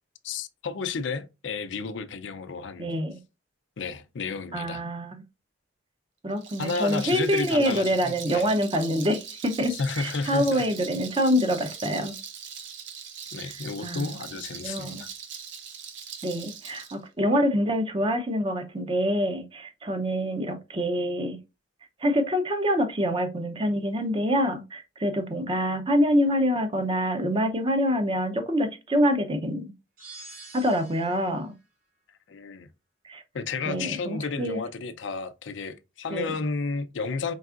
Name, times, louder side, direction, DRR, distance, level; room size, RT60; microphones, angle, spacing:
voice 1, 0.2-2.9 3.8-4.9 6.6-8.5 9.7-10.7 13.3-15.1 32.3-32.7 33.3-37.3, left 4 dB, 70° left, 0.5 m, -32 dB
voice 2, 2.8-3.2 4.5-5.2 6.2-12.1 13.8-14.2 14.6-15.0 16.2-21.4 22.0-29.7 30.5-31.5 33.0-33.2 33.7-34.6 36.1-36.4, equal, 25° right, 0.6 m, -26 dB
Rattle, 6.3-17.0, right 7 dB, 65° right, 0.6 m, -41 dB
sound 1, 30.0-31.3, right 3 dB, 45° right, 1.3 m, -46 dB
4.7 x 3.4 x 2.4 m
head